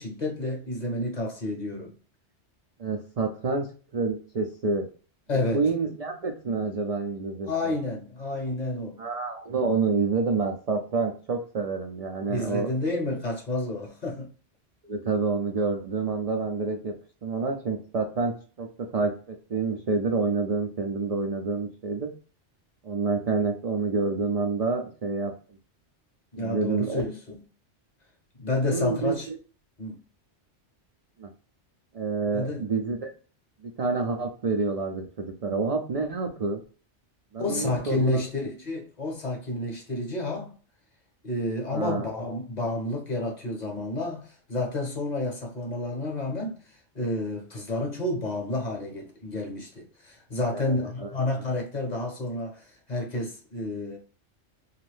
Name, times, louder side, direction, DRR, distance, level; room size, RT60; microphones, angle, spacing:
voice 1, 0.0-1.9 5.3-5.7 7.5-9.0 12.3-14.3 26.3-27.4 28.4-29.3 29.8-30.0 32.3-32.7 37.4-40.6 41.2-54.0, left 2 dB, 40° left, 0.8 m, -30 dB
voice 2, 2.8-4.9 5.5-7.7 9.0-12.7 14.8-16.9 17.2-22.1 22.8-25.3 26.4-27.0 28.6-29.4 31.2-31.3 31.9-33.1 33.6-36.6 37.3-38.3 41.7-42.1 50.5-50.8, right 4 dB, 60° right, 0.4 m, -28 dB
2.6 x 2.4 x 3.2 m
omnidirectional pair, 1.2 m